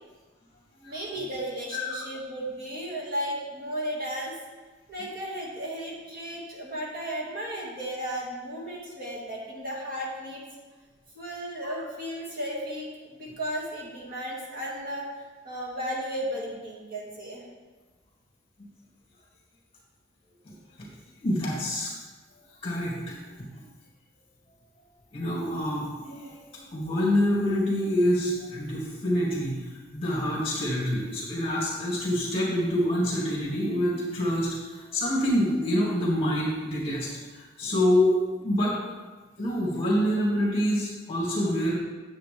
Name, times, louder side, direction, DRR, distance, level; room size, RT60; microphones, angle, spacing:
voice 1, 0.9-4.3 4.9-10.4 11.1-17.4, equal, 45° right, -4 dB, 2.1 m, -34 dB
voice 2, 1.7-2.0 6.3-6.4 20.5-20.9 21.2-21.9 22.6-23.5 25.1-38.8 39.4-41.8, equal, 30° left, -4 dB, 2.4 m, -27 dB
10.0 x 7.7 x 3.4 m, 1.3 s
head